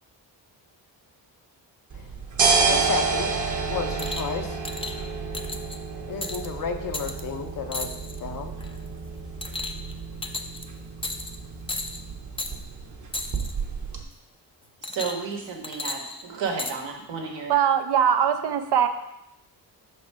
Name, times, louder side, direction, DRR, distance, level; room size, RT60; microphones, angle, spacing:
sound 1, 1.9-14.0, right 4 dB, 40° right, 1.1 m, -29 dB
voice 1, 2.7-3.3 3.7-4.6 6.1-7.9 8.2-8.5, left 5 dB, 50° left, 6 dB, 0.8 m, -32 dB
sound 2, 4.0-4.3 4.7-5.0 5.3-5.8 6.2-6.5 6.9-7.2 7.7-8.2 8.6-8.9 9.4-9.9 10.2-10.6 11.0-11.4 11.7-12.0 12.4-12.5 13.1-13.5 14.8-15.3 15.6-16.8 17.6-17.7, left 2 dB, 15° left, 0.5 m, -33 dB
voice 2, 14.9-17.5, right 5 dB, 80° right, 0 dB, 1.6 m, -32 dB
voice 3, 17.5-18.9, right 8 dB, 65° right, 7 dB, 0.7 m, -21 dB
5.6 x 4.2 x 4.8 m, 0.84 s
cardioid pair, 75°, 44 cm